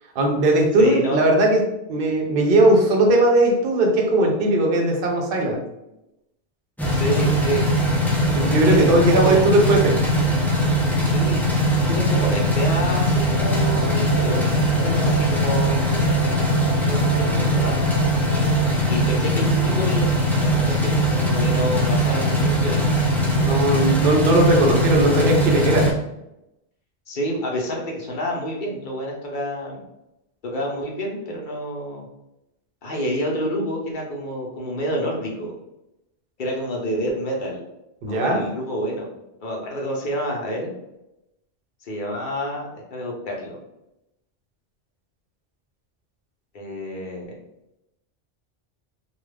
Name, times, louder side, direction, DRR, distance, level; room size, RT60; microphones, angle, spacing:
voice 1, 0.2-1.6 1.9-5.6 8.3-9.9 23.4-25.9 38.0-38.4, right 1 dB, 60° right, 1 dB, 0.8 m, -18 dB
voice 2, 0.8-1.2 6.9-7.6 8.4-9.5 11.1-11.6 11.9-16.1 16.9-17.7 18.9-20.1 20.4-22.8 27.1-29.8 30.4-32.0 32.8-35.5 36.4-37.6 38.1-39.1 39.4-40.7 41.8-43.6 46.5-47.2, equal, 55° left, -1 dB, 0.8 m, -28 dB
sound 1, 6.8-25.9, equal, 5° left, 0.4 m, -20 dB
sound 2, 13.2-18.7, right 1 dB, 90° left, 0.9 m, -34 dB
2.4 x 2.3 x 3.2 m, 0.89 s
omnidirectional pair, 1.1 m